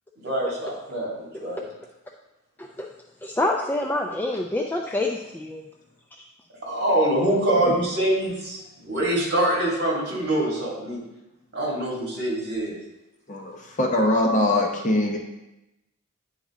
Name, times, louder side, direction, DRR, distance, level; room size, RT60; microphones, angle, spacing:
voice 1, 0.2-1.6 6.6-11.0 11.5-12.7, right 1 dB, 50° right, -4 dB, 2.3 m, -24 dB
voice 2, 3.2-5.6, left 2 dB, 10° left, 0 dB, 0.3 m, -26 dB
voice 3, 13.3-15.2, left 1 dB, 35° left, 0 dB, 1.0 m, -22 dB
9.2 x 4.0 x 3.7 m, 0.95 s
head